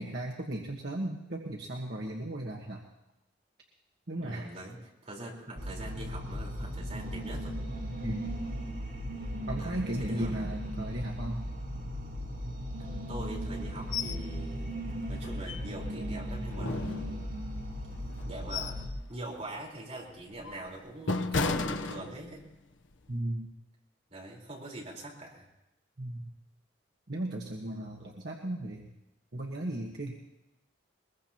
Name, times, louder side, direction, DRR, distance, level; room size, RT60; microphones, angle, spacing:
voice 1, 0.0-2.8 4.1-4.5 8.0-8.4 9.5-11.4 23.1-23.5 26.0-26.3 27.1-28.9 29.3-30.1, right 1 dB, 60° right, 0 dB, 1.4 m, -36 dB
voice 2, 4.2-4.8 5.0-7.6 9.6-10.5 13.1-14.7 15.1-17.2 18.2-18.8 19.1-22.5 24.1-25.5, right 1 dB, 35° right, -3 dB, 4.2 m, -43 dB
sound 1, 5.6-18.9, equal, 80° right, 3.3 m, -37 dB
sound 2, 13.9-14.2 14.6-14.7 15.2-16.0 16.5-17.5 18.1-18.9 19.3-19.5 20.1-22.5 22.9-23.1, left 3 dB, 85° left, 0.9 m, -34 dB
22.0 x 21.5 x 2.9 m, 0.92 s
head